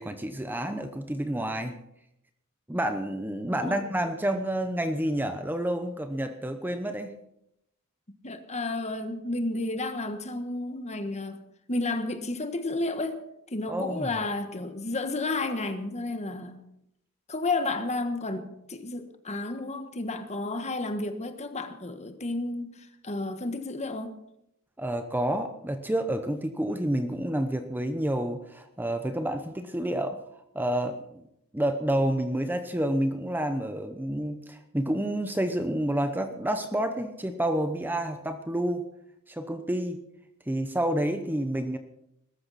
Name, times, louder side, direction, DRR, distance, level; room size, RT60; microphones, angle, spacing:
voice 1, 0.0-1.7 2.7-7.1 13.7-14.1 24.8-30.2 30.5-31.3 31.5-38.8 39.3-40.0 40.5-41.8, right 1 dB, 10° right, 7 dB, 0.8 m, -29 dB
voice 2, 8.2-11.4 11.7-13.2 13.5-16.6 17.3-24.2, left 2 dB, 30° left, 8 dB, 1.4 m, -32 dB
21.0 x 13.5 x 4.2 m, 0.80 s
head